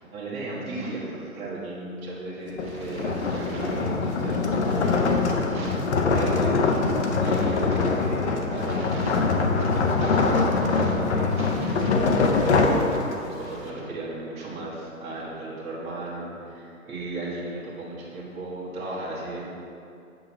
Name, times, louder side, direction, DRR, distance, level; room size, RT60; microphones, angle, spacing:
voice 1, 0.1-12.6 13.2-19.4, right 2 dB, 15° right, -6 dB, 1.2 m, -35 dB
sound 1, 2.5-13.5, left 4 dB, 55° left, 0.8 m, -23 dB
7.9 x 6.3 x 3.1 m, 2.6 s
hypercardioid pair, 140°, 42 cm